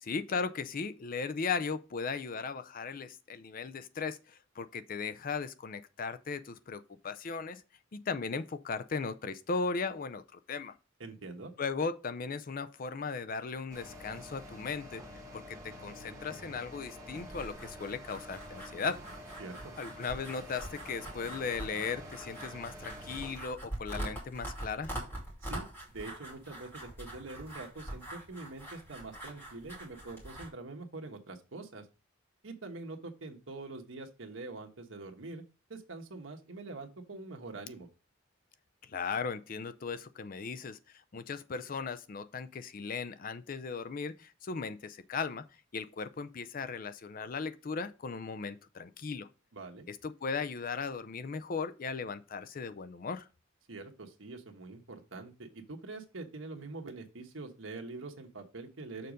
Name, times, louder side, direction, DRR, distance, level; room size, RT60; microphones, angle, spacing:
voice 1, 0.0-7.6 7.9-10.7 11.6-15.0 15.3-19.0 19.8-24.9 38.8-40.8 41.1-45.4 45.7-49.3 49.9-53.3, left 5 dB, 45° left, 0.5 m, -37 dB
voice 2, 11.0-11.5 19.4-19.7 25.4-31.9 32.4-35.4 35.7-37.9 49.5-49.9 53.7-59.1, right 3 dB, 75° right, 1.2 m, -44 dB
sound 1, 13.7-23.4, equal, 15° right, 1.5 m, -48 dB
sound 2, 17.3-30.5, right 1 dB, 10° left, 2.6 m, -44 dB
6.7 x 4.0 x 5.1 m
head